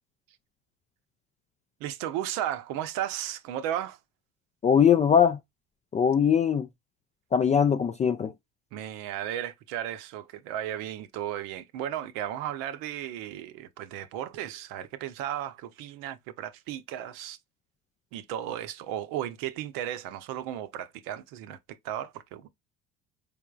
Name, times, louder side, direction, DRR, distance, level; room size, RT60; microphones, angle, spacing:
voice 1, 1.8-4.0 8.7-17.4 18.1-22.5, right 11 dB, 60° right, 0.7 m, -35 dB
voice 2, 4.6-5.4 5.9-6.7 7.3-8.3, left 7 dB, 20° left, 0.3 m, -21 dB
4.5 x 3.4 x 2.3 m
figure-of-eight pair, 60°, 39 cm